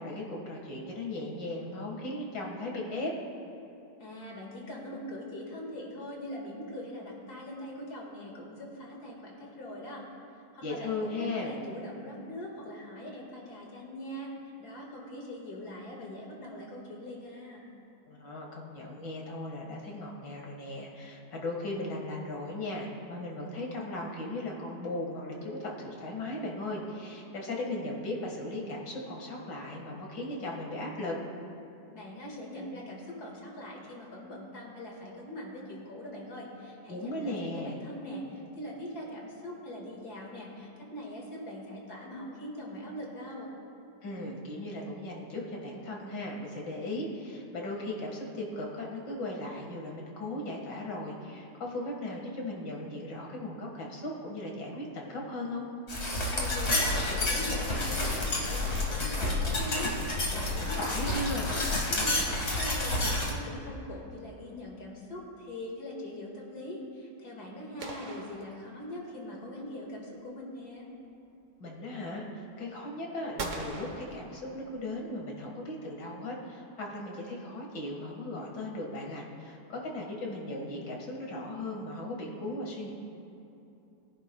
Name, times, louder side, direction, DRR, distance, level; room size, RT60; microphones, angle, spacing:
voice 1, 0.0-3.1 10.6-11.5 18.1-31.2 36.9-37.8 44.0-55.7 60.6-61.5 71.6-82.9, left 1 dB, 90° left, -1 dB, 2.4 m, -37 dB
voice 2, 4.0-10.0 10.5-14.3 14.6-17.7 31.9-43.5 56.3-62.3 62.5-70.9, left 1 dB, 65° left, -2 dB, 2.4 m, -42 dB
sound 1, 55.9-63.3, left 2 dB, 40° left, 2.1 m, -29 dB
sound 2, 67.8-69.3 73.4-75.0, right 3 dB, 50° right, 1.3 m, -41 dB
21.0 x 10.5 x 2.3 m, 2.9 s
omnidirectional pair, 1.8 m